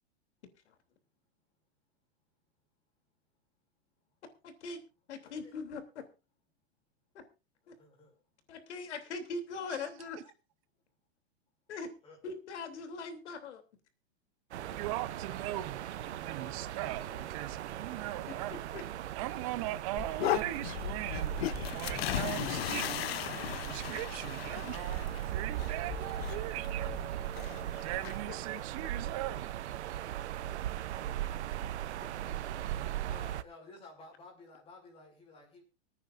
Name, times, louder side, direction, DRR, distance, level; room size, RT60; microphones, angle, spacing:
voice 1, 4.4-4.8 5.1-6.0 7.1-7.2 7.7-7.8 8.5-10.2 11.7-11.9 12.2-13.6 18.3-18.4 18.7-18.8, left 4 dB, 85° left, 7 dB, 3.1 m, -41 dB
voice 2, 7.6-8.2 12.0-12.2 14.5-15.7 15.9-17.4 33.1-35.6, left 3 dB, 15° left, 0 dB, 5.6 m, -55 dB
sound 1, 14.5-33.4, right 12 dB, 85° right, 0.8 m, -38 dB
sound 2, 14.6-19.8, right 6 dB, 65° right, 4.5 m, -53 dB
voice 3, 14.8-15.8 16.1-18.5 19.2-23.1 23.4-27.0 27.8-29.7, right 16 dB, 30° right, 15 dB, 0.7 m, -40 dB
sound 3, 20.0-28.2, left 13 dB, 65° left, 0.8 m, -37 dB
25.5 x 9.5 x 2.6 m, 0.30 s
supercardioid pair, 170°, 33 cm